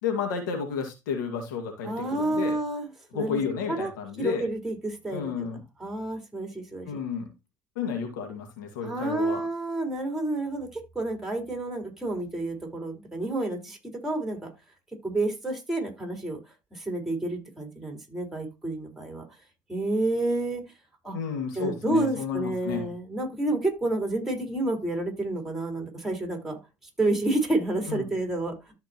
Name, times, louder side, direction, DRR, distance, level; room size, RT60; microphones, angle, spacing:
voice 1, 0.0-2.6 3.1-4.5 5.1-5.6 6.9-7.3 7.8-9.4 21.1-22.9 27.9-28.1, left 6 dB, 80° left, 3 dB, 2.1 m, -31 dB
voice 2, 1.8-2.9 3.1-3.4 3.7-3.9 4.2-5.5 5.8-7.0 8.8-13.8 14.0-14.5 15.0-16.4 16.7-19.2 19.7-20.6 21.0-21.2 21.5-26.6 27.0-28.7, right 2 dB, ahead, 1 dB, 4.6 m, -29 dB
13.0 x 5.2 x 3.0 m, 0.25 s
hypercardioid pair, 75°, 10 cm